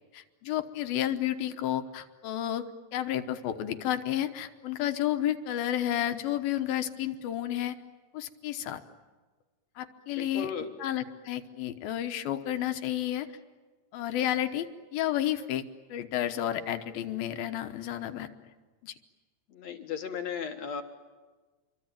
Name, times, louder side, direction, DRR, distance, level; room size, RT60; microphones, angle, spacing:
voice 1, 0.1-2.6 2.9-7.8 8.1-8.8 9.8-10.5 10.8-13.3 13.9-14.7 14.9-15.6 15.9-18.3 18.8-18.9, left 11 dB, 75° left, 9 dB, 2.8 m, -31 dB
voice 2, 10.2-10.7 19.5-20.8, left 7 dB, 60° left, 5 dB, 2.1 m, -35 dB
27.5 x 24.0 x 9.1 m, 1.3 s
omnidirectional pair, 4.4 m